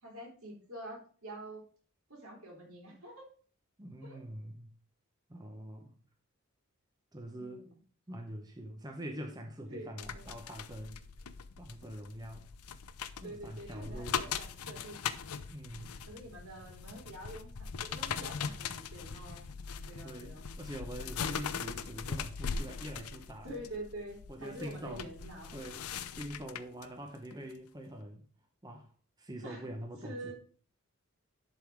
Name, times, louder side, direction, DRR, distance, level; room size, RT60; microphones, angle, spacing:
voice 1, 0.0-1.6 2.1-3.3 4.0-4.2 7.3-7.7 9.7-10.3 13.2-15.2 16.1-19.5 19.9-20.4 23.4-25.5 29.4-29.7 30.0-30.3, right 1 dB, 75° right, 0 dB, 3.3 m, -47 dB
voice 2, 3.8-4.7 5.3-6.0 7.1-7.6 8.1-11.0 11.6-12.5 13.2-14.3 15.5-16.0 20.0-23.6 24.3-25.1 25.5-25.9 26.1-28.2 28.6-28.9 29.2-30.3, right 1 dB, 20° right, 3 dB, 0.8 m, -44 dB
sound 1, 10.0-26.9 27.3-27.5, left 6 dB, 90° left, 0.6 m, -40 dB
11.0 x 3.8 x 4.6 m, 0.43 s
head